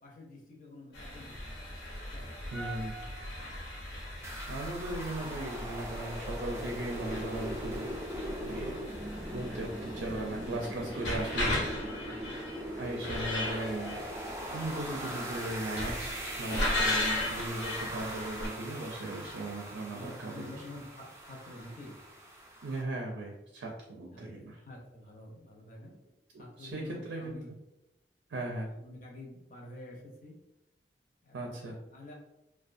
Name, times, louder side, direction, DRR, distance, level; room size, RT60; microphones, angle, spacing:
voice 1, 0.0-1.6 2.0-2.4 5.2-5.4 12.1-12.2 19.9-22.0 24.1-25.9 26.4-27.5 28.8-30.4 31.2-31.6 31.8-32.1, left 1 dB, 45° left, -1 dB, 0.5 m, -49 dB
sound 1, 0.9-18.5, left 1 dB, 80° left, 0.7 m, -37 dB
voice 2, 2.5-3.0 4.5-7.9 8.4-8.8 9.3-11.6 12.8-14.0 14.5-20.5 22.6-24.6 26.3-27.4 28.3-28.7 31.3-31.8, right 2 dB, 90° right, 0 dB, 0.4 m, -37 dB
sound 2, 4.2-22.8, equal, 15° right, 0.3 m, -41 dB
2.5 x 2.2 x 2.5 m, 0.92 s
head